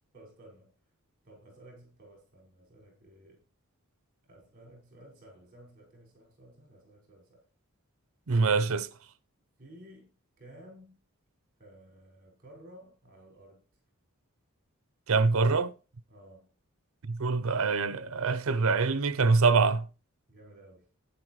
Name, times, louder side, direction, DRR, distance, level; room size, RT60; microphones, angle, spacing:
voice 1, 0.1-0.7 1.2-3.4 4.2-7.5 9.6-11.0 11.6-13.6 16.1-16.5 20.3-20.9, right 1 dB, 40° right, 5.6 m, -54 dB
voice 2, 8.3-8.9 15.1-15.7 17.0-19.9, right 4 dB, 70° right, 0.7 m, -25 dB
11.5 x 9.8 x 3.1 m
head